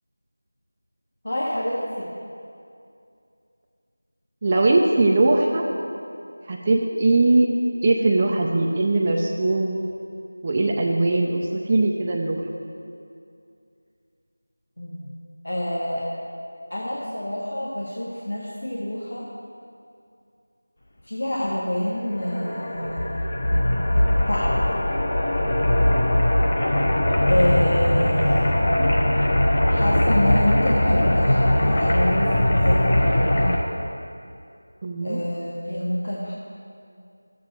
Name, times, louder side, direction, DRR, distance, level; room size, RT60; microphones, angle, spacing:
voice 1, 1.2-2.1 14.8-15.1 15.4-16.1 16.7-19.3 21.0-23.4 24.3-24.6 27.2-28.7 29.7-33.6 35.0-36.3, left 1 dB, 60° left, -5 dB, 1.8 m, -27 dB
voice 2, 4.4-5.6 6.5-7.5 7.8-9.8 10.4-12.4 34.8-35.2, right 2 dB, 20° right, 0 dB, 0.6 m, -20 dB
sound 1, 22.0-33.6, left 1 dB, 35° left, 1.1 m, -20 dB
13.5 x 8.6 x 4.5 m, 2.5 s
figure-of-eight pair, 175°, 0 cm